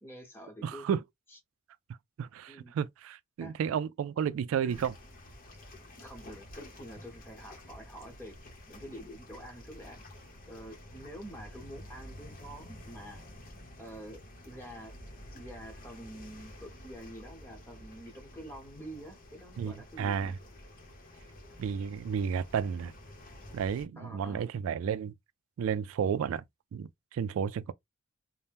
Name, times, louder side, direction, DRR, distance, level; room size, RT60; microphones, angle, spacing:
voice 1, 0.0-0.9 2.5-2.8 3.4-3.5 4.6-4.8 6.0-8.4 8.7-10.0 10.5-13.2 13.8-14.9 15.3-20.3 24.0-24.5, right 1 dB, 10° left, 1.0 m, -47 dB
voice 2, 0.6-1.0 2.2-4.9 19.6-20.4 21.6-22.9 23.5-25.1 25.6-26.4 26.7-27.7, right 7 dB, 80° right, 0.3 m, -32 dB
sound 1, 4.7-23.8, left 1 dB, 45° left, 0.8 m, -50 dB
2.7 x 2.1 x 3.4 m
head